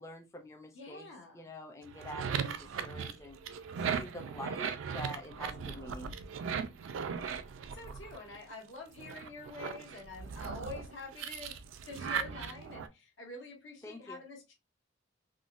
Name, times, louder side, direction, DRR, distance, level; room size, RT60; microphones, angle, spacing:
voice 1, 0.0-1.1 1.3-3.4 3.9-6.1 13.8-14.2, left 1 dB, 15° left, 4 dB, 0.4 m, -46 dB
voice 2, 0.7-1.5 7.7-11.6 11.8-14.5, left 3 dB, 80° left, 1 dB, 1.2 m, -47 dB
sound 1, 1.8-8.5 9.0-12.9, right 6 dB, 85° right, 0.3 m, -38 dB
3.6 x 2.1 x 2.4 m, 0.24 s
head